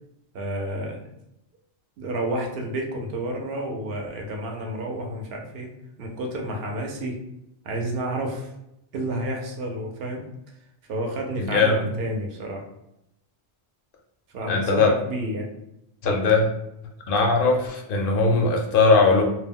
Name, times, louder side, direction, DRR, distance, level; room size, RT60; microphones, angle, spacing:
voice 1, 0.3-1.0 2.0-5.7 6.0-7.2 7.6-8.5 8.9-10.3 10.9-12.6 14.3-15.5, right 1 dB, 70° right, 1 dB, 0.8 m, -30 dB
voice 2, 11.4-11.8 14.5-14.9 16.0-16.5 17.1-19.2, left 3 dB, 65° left, 2 dB, 0.7 m, -19 dB
2.3 x 2.0 x 3.5 m, 0.83 s
omnidirectional pair, 1.1 m